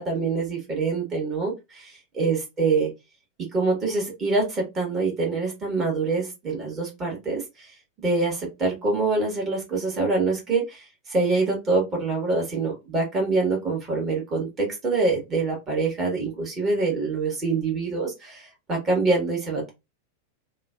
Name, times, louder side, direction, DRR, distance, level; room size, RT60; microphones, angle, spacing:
voice 1, 0.0-2.9 3.5-7.7 8.0-19.7, right 3 dB, 25° right, -1 dB, 1.3 m, -25 dB
3.0 x 2.1 x 2.4 m, 0.23 s
figure-of-eight pair, 90°, 0 cm